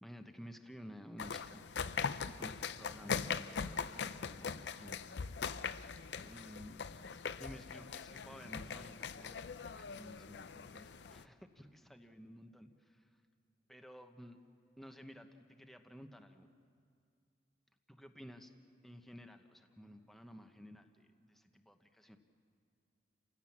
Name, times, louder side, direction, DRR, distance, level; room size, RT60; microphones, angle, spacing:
voice 1, 0.0-1.6 2.3-5.1 6.2-9.5 9.7-13.3 13.7-14.4 14.8-16.5 17.9-18.5 18.8-22.2, equal, ahead, 5 dB, 1.0 m, -54 dB
sound 1, 1.2-11.2, left 6 dB, 65° left, 0.5 m, -41 dB
29.0 x 16.5 x 7.3 m, 2.3 s
head